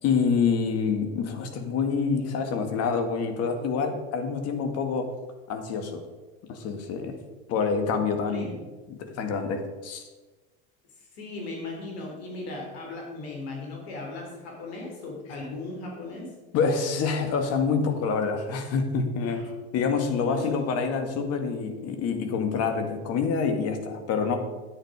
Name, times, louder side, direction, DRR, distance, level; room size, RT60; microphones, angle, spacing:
voice 1, 0.0-5.1 5.5-6.0 6.5-7.2 7.5-8.6 8.9-10.0 16.5-24.4, left 5 dB, 50° left, 6 dB, 1.9 m, -27 dB
voice 2, 11.0-16.4 19.2-19.5 20.2-20.6, left 2 dB, 70° left, 0 dB, 3.4 m, -37 dB
10.5 x 8.8 x 4.9 m, 1.2 s
hypercardioid pair, 90°, 32 cm